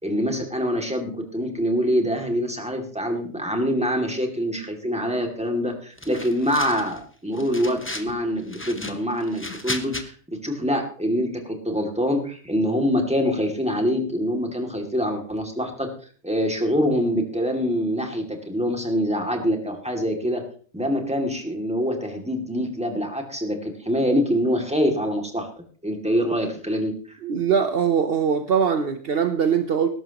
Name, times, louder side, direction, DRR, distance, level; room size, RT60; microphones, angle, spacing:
voice 1, 0.0-15.9 16.2-20.4 20.7-25.5 25.8-27.2, equal, 5° right, 2 dB, 2.5 m, -25 dB
sound 1, 6.0-7.0 7.3-8.1 8.5-10.0, left 1 dB, 10° left, 1.0 m, -34 dB
voice 2, 27.2-29.9, right 7 dB, 60° right, 8 dB, 1.0 m, -22 dB
20.0 x 11.5 x 3.0 m, 0.43 s
omnidirectional pair, 1.2 m